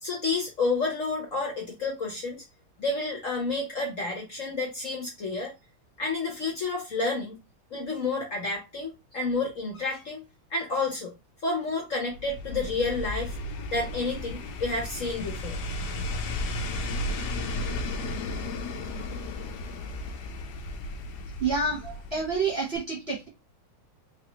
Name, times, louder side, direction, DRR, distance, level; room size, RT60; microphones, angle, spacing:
voice 1, 0.0-2.4 2.8-5.5 6.0-7.4 7.7-10.2 10.5-11.1 11.4-13.4 13.7-15.6, left 3 dB, 50° left, 1.0 m, -30 dB
sound 1, 12.1-22.5 22.8-22.9, left 2 dB, 70° left, 1.1 m, -34 dB
voice 2, 21.4-23.3, right 4 dB, 40° right, 1.0 m, -28 dB
3.9 x 3.0 x 3.0 m
omnidirectional pair, 2.3 m